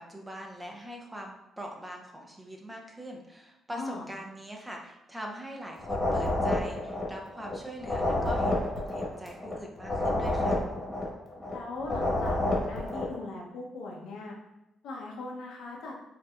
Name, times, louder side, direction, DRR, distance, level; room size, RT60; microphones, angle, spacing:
voice 1, 0.0-10.6, equal, 10° right, 0 dB, 0.7 m, -42 dB
voice 2, 3.7-4.1 11.5-14.3 14.8-15.9, left 3 dB, 80° left, -1 dB, 0.8 m, -39 dB
sound 1, 5.8-7.5 7.8-11.5 11.8-13.2, left 1 dB, 20° left, 1.4 m, -29 dB
4.5 x 3.0 x 2.5 m, 0.90 s
cardioid pair, 90°, 0 cm